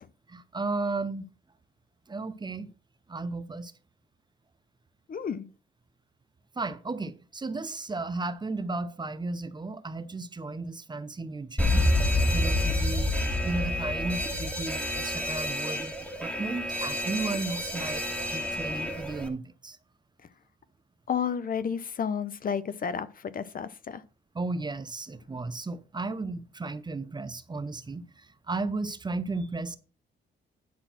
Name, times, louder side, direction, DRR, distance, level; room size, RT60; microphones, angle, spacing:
voice 1, 0.3-1.3 2.1-2.7 3.1-3.7 6.6-11.8 12.3-19.8 24.3-29.8, right 3 dB, 20° right, 0.9 m, -34 dB
voice 2, 5.1-5.4 21.1-24.0, left 7 dB, 45° left, 0.9 m, -31 dB
Alarm, 11.6-19.3, left 1 dB, 5° left, 1.9 m, -28 dB
10.5 x 4.1 x 6.1 m
cardioid pair, 90°, 20 cm